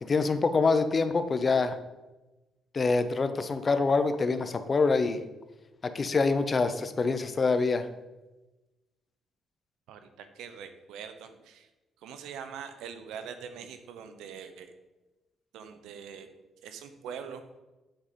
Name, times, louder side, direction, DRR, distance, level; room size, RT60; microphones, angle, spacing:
voice 1, 0.0-1.8 2.7-5.2 5.8-7.9, left 4 dB, 35° left, 10 dB, 0.6 m, -25 dB
voice 2, 9.9-11.7 12.0-14.7 15.5-16.3 16.6-17.4, right 7 dB, 90° right, 9 dB, 0.7 m, -43 dB
7.7 x 5.0 x 4.3 m, 1.1 s
cardioid pair, 90°, 0 cm